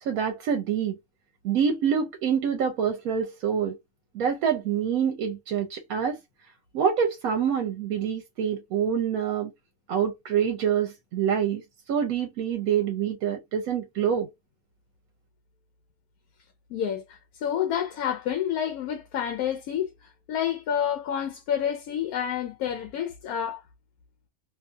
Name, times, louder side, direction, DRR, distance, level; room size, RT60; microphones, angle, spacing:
voice 1, 0.0-1.0 1.4-3.8 4.1-6.2 6.7-9.5 9.9-11.6 11.9-14.3, right 8 dB, 80° right, 1.0 m, -26 dB
voice 2, 16.7-23.6, left 9 dB, 90° left, 1.1 m, -29 dB
2.7 x 2.6 x 2.3 m
omnidirectional pair, 1.5 m